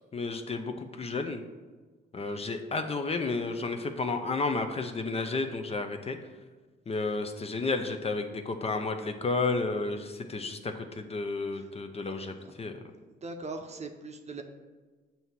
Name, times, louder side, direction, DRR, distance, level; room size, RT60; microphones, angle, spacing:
voice 1, 0.1-1.4 2.1-6.2 6.9-12.7, left 3 dB, 30° left, 6 dB, 0.6 m, -32 dB
voice 2, 13.2-14.4, right 3 dB, 35° right, 5 dB, 0.7 m, -40 dB
7.6 x 2.8 x 5.8 m, 1.3 s
cardioid pair, 90°, 20 cm